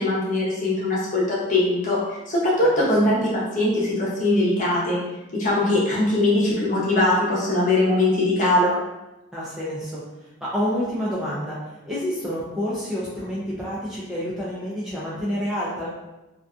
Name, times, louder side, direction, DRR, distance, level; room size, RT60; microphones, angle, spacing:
voice 1, 0.0-5.0 5.3-8.8, left 1 dB, 40° left, -6 dB, 0.7 m, -21 dB
voice 2, 9.3-15.9, equal, 5° right, -9 dB, 0.3 m, -28 dB
2.5 x 2.2 x 2.4 m, 1.0 s
head